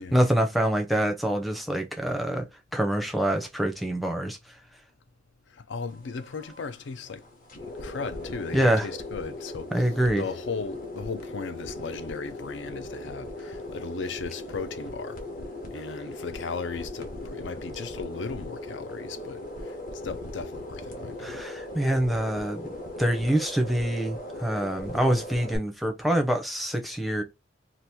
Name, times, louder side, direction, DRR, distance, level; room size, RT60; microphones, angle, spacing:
voice 1, 0.1-2.5 2.7-4.4 8.5-8.9 9.7-10.2 21.2-22.6 23.0-27.2, right 1 dB, ahead, 0.5 m, -25 dB
voice 2, 5.5-7.2 7.6-15.2 15.7-19.8 20.0-21.4, left 5 dB, 70° left, 0.5 m, -37 dB
sound 1, 5.9-25.6, left 1 dB, 50° left, 0.9 m, -39 dB
2.9 x 2.5 x 3.4 m
head